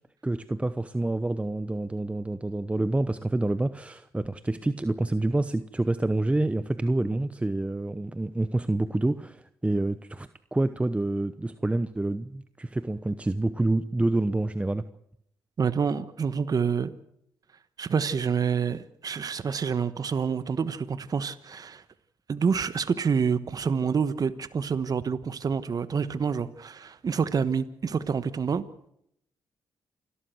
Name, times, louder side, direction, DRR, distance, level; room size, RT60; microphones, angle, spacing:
voice 1, 0.2-14.9, right 2 dB, 15° right, 0.9 m, -27 dB
voice 2, 15.6-16.9 17.8-21.8 22.3-28.6, right 6 dB, 50° right, 1.2 m, -27 dB
28.5 x 13.0 x 7.9 m
supercardioid pair, 60°, 8 cm